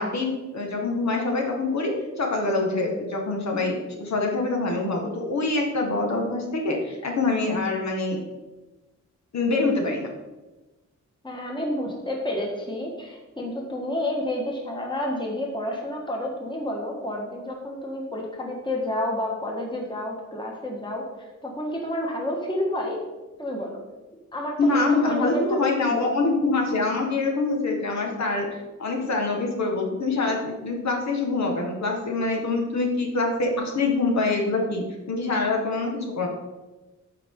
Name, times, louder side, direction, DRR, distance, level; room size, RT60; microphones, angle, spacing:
voice 1, 0.0-8.2 9.3-10.1 24.6-28.5 28.8-36.3, left 3 dB, 65° left, 1 dB, 1.6 m, -25 dB
voice 2, 11.2-21.0 21.4-23.0 23.4-23.8 24.3-26.0, left 1 dB, 15° left, -1 dB, 1.6 m, -30 dB
14.0 x 5.0 x 3.8 m, 1.1 s
wide cardioid pair, 165°, 30 cm